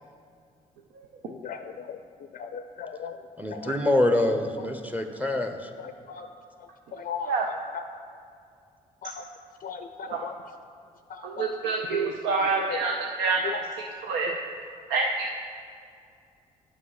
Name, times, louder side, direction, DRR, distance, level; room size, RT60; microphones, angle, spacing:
voice 1, 2.4-3.1 3.5-3.6 6.1-6.2 7.1-7.3 7.7-7.8 9.0-9.1 9.6-10.3 11.4-11.5 11.9-12.1 12.6-12.8 13.4-13.6, left 7 dB, 55° left, 8 dB, 0.4 m, -35 dB
voice 2, 3.4-5.7, left 1 dB, 10° right, 6 dB, 0.7 m, -25 dB
voice 3, 11.4-12.9 13.2-13.6 14.1-14.3 14.9-15.1, right 4 dB, 80° right, 1 dB, 0.6 m, -26 dB
7.7 x 5.7 x 5.7 m, 2.4 s
hypercardioid pair, 50°, 17 cm